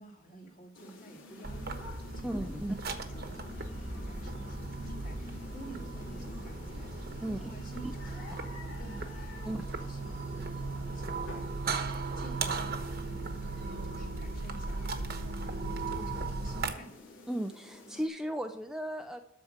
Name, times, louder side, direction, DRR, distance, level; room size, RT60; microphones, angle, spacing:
voice 1, 0.0-16.9, right 2 dB, 40° left, 0 dB, 2.2 m, -52 dB
sound 1, 0.7-18.1, left 2 dB, 75° left, 3.3 m, -49 dB
sound 2, 1.4-16.7, right 3 dB, 50° right, 1.1 m, -37 dB
voice 2, 2.2-2.8 7.2-7.4 9.4-9.6 17.3-19.2, right 1 dB, 5° right, 5 dB, 0.4 m, -35 dB
13.0 x 4.4 x 7.9 m, 0.83 s
head